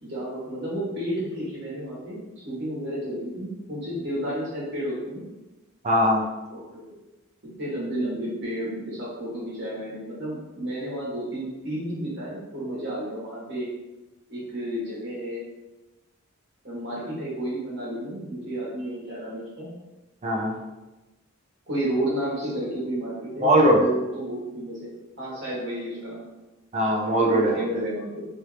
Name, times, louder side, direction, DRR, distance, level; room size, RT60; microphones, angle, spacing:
voice 1, 0.0-5.3 6.5-6.9 7.4-13.7 14.3-15.5 16.6-19.7 21.7-24.9 25.2-26.3 27.2-28.3, right 1 dB, 55° right, -6 dB, 1.4 m, -31 dB
voice 2, 5.8-6.2 20.2-20.6 23.4-23.8 26.7-27.6, equal, 30° right, -1 dB, 0.5 m, -20 dB
3.0 x 2.6 x 3.2 m, 1.1 s
head